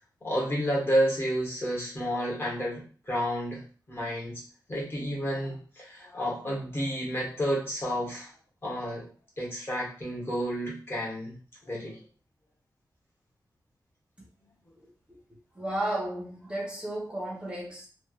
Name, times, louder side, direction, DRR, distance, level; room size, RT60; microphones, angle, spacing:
voice 1, 0.2-3.6 3.9-4.4 4.7-8.3 8.6-9.1 9.4-11.4 11.6-12.0, equal, 35° left, -4 dB, 1.4 m, -30 dB
voice 2, 15.5-17.9, right 1 dB, 15° right, -4 dB, 1.0 m, -33 dB
3.3 x 2.5 x 2.4 m, 0.40 s
wide cardioid pair, 135°, 8 cm